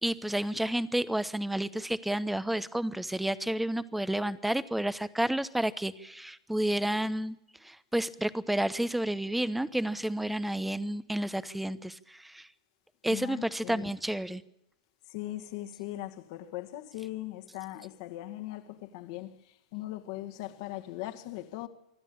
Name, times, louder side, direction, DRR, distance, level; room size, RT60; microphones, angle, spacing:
voice 1, 0.0-7.4 7.6-12.5 13.0-14.4, right 1 dB, 5° right, 1.0 m, -30 dB
voice 2, 13.1-13.9 15.1-19.3 19.7-21.7, left 15 dB, 60° left, 2.0 m, -39 dB
26.5 x 12.0 x 8.8 m
hypercardioid pair, 100°, 3 cm